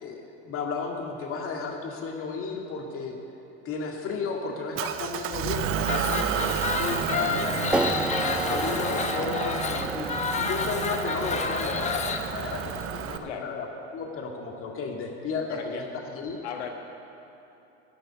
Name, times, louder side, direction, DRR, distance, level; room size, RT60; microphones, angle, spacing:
voice 1, 0.0-3.2 3.7-8.0 8.4-13.7 13.9-15.8 16.1-16.4, left 4 dB, 40° left, 1 dB, 2.1 m, -33 dB
Motor vehicle (road) / Engine, 4.8-13.2, right 9 dB, 40° right, 0.7 m, -31 dB
sound 1, 5.8-12.2, left 5 dB, 20° left, 0.9 m, -30 dB
sound 2, 7.7-13.9, right 2 dB, 5° right, 0.3 m, -33 dB
voice 2, 15.5-15.8 16.4-16.7, left 8 dB, 80° left, 3 dB, 1.5 m, -37 dB
11.0 x 6.8 x 8.4 m, 2.9 s
hypercardioid pair, 85°, 33 cm